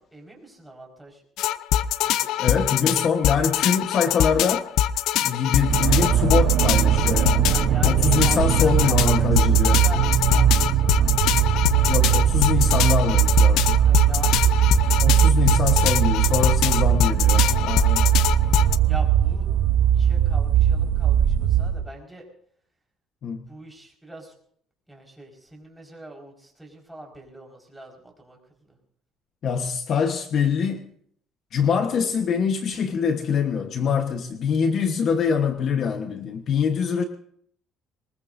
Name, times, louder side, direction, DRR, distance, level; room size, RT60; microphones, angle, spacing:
voice 1, 0.1-1.3 2.0-2.6 2.9-3.0 7.4-11.3 13.8-14.5 18.5-19.5 19.9-22.2 23.4-24.3 24.9-28.8, right 1 dB, 5° right, 4.9 m, -42 dB
sound 1, 1.4-18.8, left 12 dB, 75° left, 0.5 m, -23 dB
voice 2, 2.4-4.7 5.1-7.6 7.8-9.8 11.9-13.8 15.0-18.1 23.2-23.4 29.4-30.8 31.5-37.0, left 6 dB, 50° left, 1.2 m, -24 dB
sound 2, 5.6-21.9, right 10 dB, 60° right, 0.6 m, -20 dB
23.0 x 20.5 x 2.7 m
cardioid pair, 125°, 0 cm